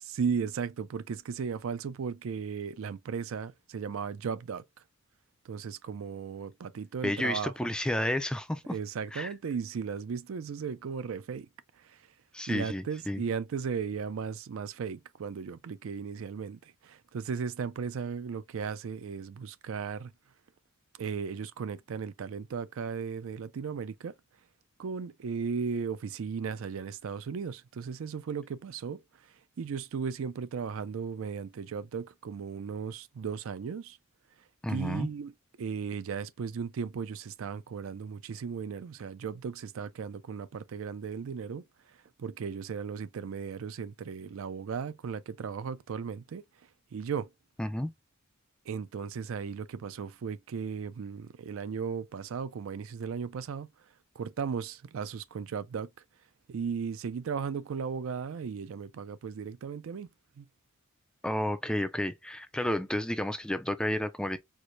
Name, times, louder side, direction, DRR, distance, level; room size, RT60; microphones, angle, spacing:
voice 1, 0.0-4.6 5.4-7.7 8.7-11.5 11.8-12.0 12.5-20.1 21.0-24.1 24.8-29.0 29.6-34.0 34.7-35.3 35.6-41.6 42.2-46.4 46.9-47.3 48.7-53.7 54.2-55.9 56.5-60.1 60.4-60.5, right 6 dB, 70° right, 0.4 m, -36 dB
voice 2, 7.0-8.8 9.1-9.3 12.3-13.2 34.6-35.1 47.6-47.9 61.2-64.4, left 1 dB, 5° left, 0.3 m, -31 dB
4.6 x 2.0 x 2.6 m
head